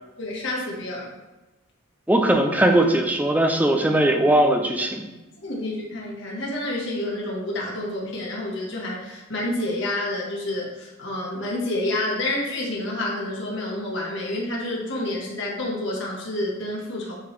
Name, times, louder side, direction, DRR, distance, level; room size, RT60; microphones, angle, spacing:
voice 1, 0.2-1.1 5.3-17.1, left 1 dB, 60° left, -3 dB, 1.6 m, -29 dB
voice 2, 2.1-5.1, right 1 dB, 10° right, 3 dB, 0.5 m, -19 dB
9.4 x 3.5 x 3.3 m, 1.1 s
head